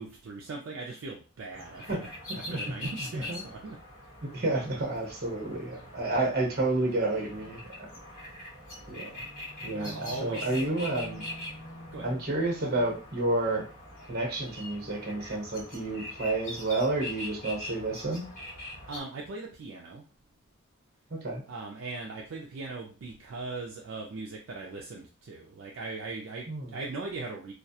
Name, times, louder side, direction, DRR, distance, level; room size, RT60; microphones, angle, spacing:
voice 1, 0.0-3.8 9.7-10.5 11.9-12.1 18.9-20.0 21.5-27.5, right 3 dB, 65° right, -1 dB, 0.4 m, -39 dB
sound 1, 1.5-19.0, left 1 dB, 40° left, 1.1 m, -43 dB
voice 2, 4.2-7.9 8.9-9.3 9.6-11.2 12.0-13.6 14.1-18.3 21.1-21.4 26.5-26.7, right 2 dB, 45° right, 0 dB, 0.9 m, -30 dB
2.3 x 2.2 x 2.7 m, 0.37 s
head